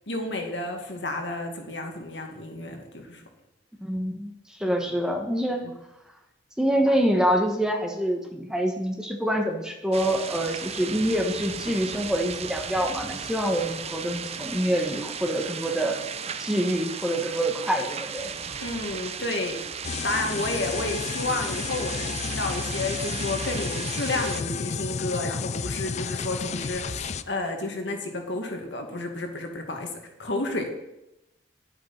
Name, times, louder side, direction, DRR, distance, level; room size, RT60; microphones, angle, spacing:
voice 1, 0.1-3.2 4.7-5.0 5.6-5.7 18.6-19.6 20.0-30.7, left 2 dB, 70° left, 3 dB, 2.1 m, -31 dB
voice 2, 3.8-5.6 6.6-16.0 16.4-18.3, equal, 5° right, 3 dB, 1.2 m, -26 dB
sound 1, 9.9-24.4, right 6 dB, 35° right, 0.6 m, -36 dB
sound 2, 19.8-27.2, left 5 dB, 40° left, 0.4 m, -32 dB
11.0 x 8.1 x 5.8 m, 0.91 s
head